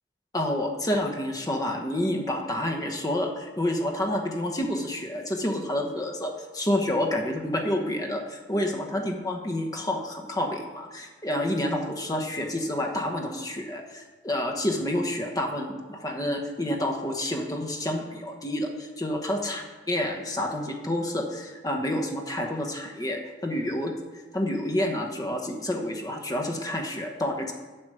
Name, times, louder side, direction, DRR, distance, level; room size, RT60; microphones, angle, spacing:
voice 1, 0.3-23.9 24.3-27.5, left 1 dB, 20° left, 2 dB, 1.0 m, -29 dB
7.8 x 6.1 x 6.2 m, 1.2 s
head